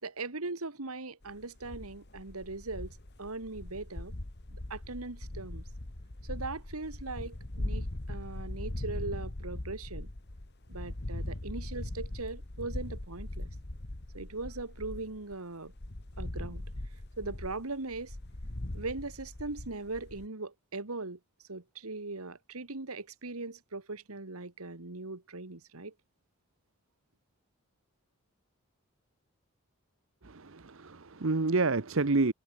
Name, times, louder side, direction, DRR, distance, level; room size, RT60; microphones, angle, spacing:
voice 1, 0.0-4.1 4.5-5.6 6.2-10.1 10.7-13.5 14.1-15.7 16.2-16.6 17.2-18.2 18.7-21.2 21.5-25.9, right 3 dB, 80° right, 2.0 m, -40 dB
sound 1, 1.2-15.4 15.7-20.3, left 1 dB, 50° left, 1.6 m, -40 dB
voice 2, 30.2-32.3, right 3 dB, 65° right, 0.9 m, -28 dB
head